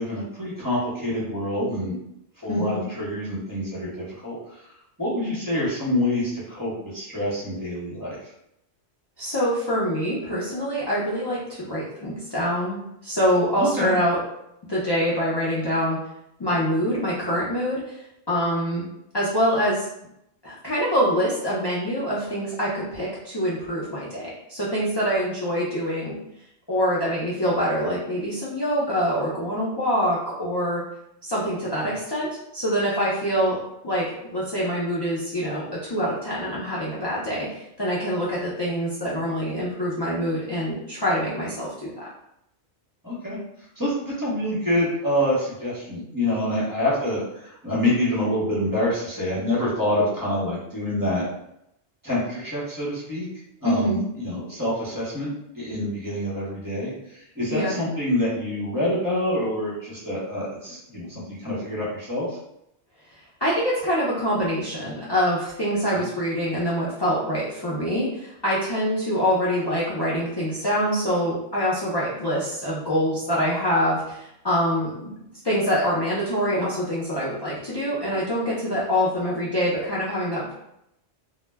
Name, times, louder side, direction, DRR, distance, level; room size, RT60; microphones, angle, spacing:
voice 1, 0.0-2.0 2.4-4.6 5.0-8.3 13.6-13.9 31.8-31.9 43.0-43.4 43.8-51.2 52.0-53.3 53.6-62.4 65.9-66.1, left 1 dB, 20° right, -8 dB, 0.6 m, -26 dB
voice 2, 2.5-2.9 9.2-12.8 13.0-14.2 14.7-16.0 16.4-18.0 18.3-18.9 19.1-19.9 20.4-26.2 26.7-30.8 31.2-33.6 33.8-34.1 34.3-42.1 53.6-54.0 57.5-57.8 63.4-75.1 75.4-80.5, equal, 45° left, -8 dB, 0.3 m, -25 dB
2.1 x 2.1 x 3.2 m, 0.82 s
omnidirectional pair, 1.1 m